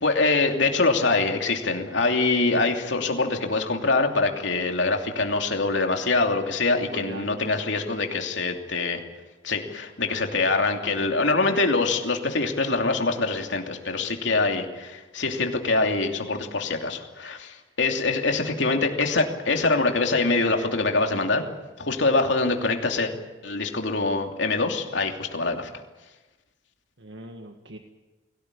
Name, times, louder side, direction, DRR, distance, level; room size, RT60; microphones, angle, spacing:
voice 1, 0.0-9.0 9.4-21.4 21.8-23.1 23.4-25.7, left 3 dB, 70° left, 3 dB, 2.9 m, -24 dB
voice 2, 6.9-7.4 17.5-17.6 27.0-27.8, right 2 dB, 70° right, 4 dB, 1.6 m, -41 dB
22.5 x 18.0 x 9.9 m, 1.2 s
head